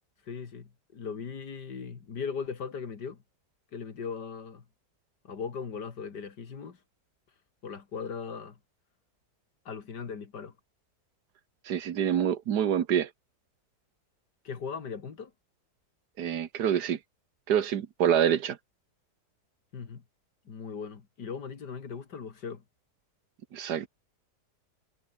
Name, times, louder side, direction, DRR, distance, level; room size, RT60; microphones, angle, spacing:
voice 1, 0.3-3.2 3.7-4.6 5.2-6.8 7.6-8.6 9.7-10.5 14.4-15.3 19.7-20.0 20.5-22.6, left 6 dB, 85° left, 2.8 m, -38 dB
voice 2, 11.7-13.1 16.2-17.0 17.5-18.6 23.5-23.9, right 9 dB, 80° right, 1.7 m, -26 dB
omnidirectional pair, 1.8 m